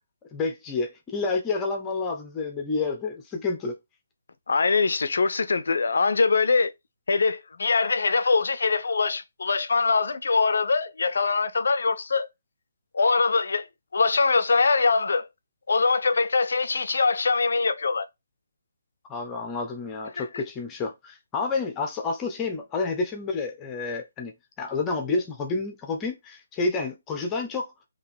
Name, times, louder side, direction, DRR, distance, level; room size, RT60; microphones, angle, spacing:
voice 1, 0.3-3.8 19.1-27.7, left 3 dB, 15° left, 0.9 m, -29 dB
voice 2, 4.5-6.7 7.1-12.3 12.9-13.7 13.9-15.3 15.7-18.0 20.2-20.3, left 4 dB, 65° left, 0.6 m, -23 dB
3.9 x 2.9 x 4.3 m
figure-of-eight pair, 140°, 0 cm